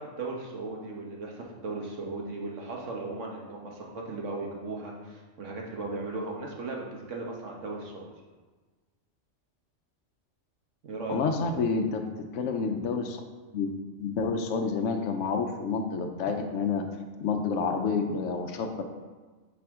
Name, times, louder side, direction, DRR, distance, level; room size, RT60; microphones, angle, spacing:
voice 1, 0.0-8.1 10.8-11.6, right 3 dB, 75° right, -1 dB, 1.4 m, -37 dB
voice 2, 11.1-12.0 12.3-13.2 13.5-13.7 14.0-16.8 17.2-18.8, left 5 dB, 80° left, 5 dB, 1.0 m, -29 dB
8.7 x 4.2 x 3.6 m, 1.3 s
omnidirectional pair, 1.3 m